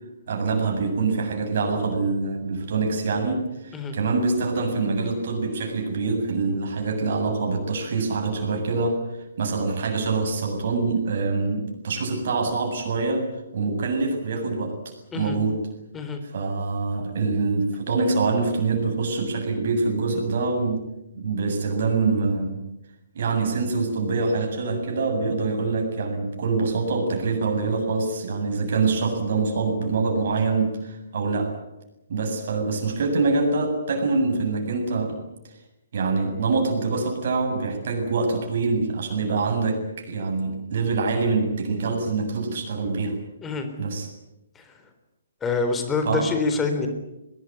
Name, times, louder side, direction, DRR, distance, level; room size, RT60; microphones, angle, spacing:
voice 1, 0.3-9.0 9.4-13.3 13.5-15.6 16.3-20.9 21.1-22.6 23.1-31.6 32.1-35.2 35.9-43.2 43.8-44.1 46.1-46.3, right 3 dB, 45° right, 3 dB, 7.7 m, -25 dB
voice 2, 45.4-46.9, left 4 dB, 10° left, 6 dB, 3.8 m, -26 dB
22.0 x 22.0 x 9.8 m, 0.93 s
figure-of-eight pair, 130°, 0 cm